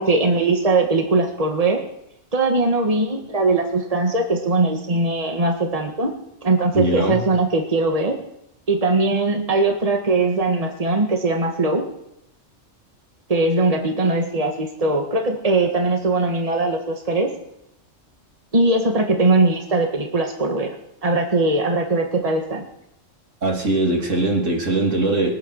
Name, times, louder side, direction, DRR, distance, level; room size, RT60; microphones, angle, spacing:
voice 1, 0.0-1.8 2.3-6.1 6.4-8.2 8.7-11.8 13.3-17.3 18.5-20.7 21.0-22.6, right 2 dB, 30° right, 3 dB, 1.9 m, -20 dB
voice 2, 6.7-7.2 23.4-25.4, right 2 dB, 85° right, 0 dB, 3.6 m, -21 dB
21.5 x 9.6 x 6.5 m, 0.80 s
omnidirectional pair, 1.3 m